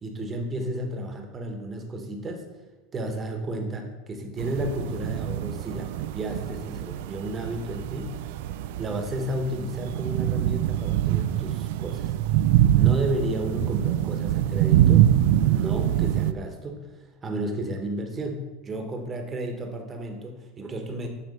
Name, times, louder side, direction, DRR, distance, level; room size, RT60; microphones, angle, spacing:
voice 1, 0.0-2.5 2.9-8.2 8.8-12.1 12.8-21.1, right 1 dB, 20° right, 3 dB, 1.1 m, -32 dB
sound 1, 4.4-16.3, right 12 dB, 70° right, 0.3 m, -24 dB
9.2 x 3.2 x 5.3 m, 1.1 s
supercardioid pair, 135°, 0 cm